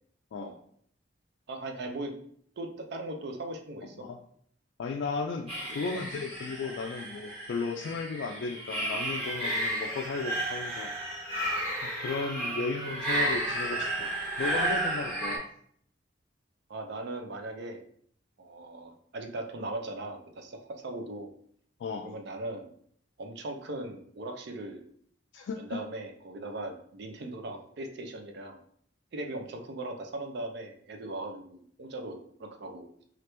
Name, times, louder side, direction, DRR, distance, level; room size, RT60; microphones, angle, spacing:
voice 1, 1.5-2.1 2.6-4.0 5.8-6.0 6.6-6.7 16.7-17.8 18.4-21.3 22.0-22.7 23.2-24.8 25.6-28.6 29.1-32.9, right 2 dB, 65° right, 4 dB, 0.5 m, -39 dB
voice 2, 4.8-10.9 11.8-14.1 14.4-15.4 21.8-22.1 25.3-25.8, left 4 dB, 65° left, 2 dB, 0.3 m, -35 dB
sound 1, 5.5-15.4, right 1 dB, 30° right, 1.1 m, -32 dB
2.9 x 2.4 x 3.2 m, 0.63 s
head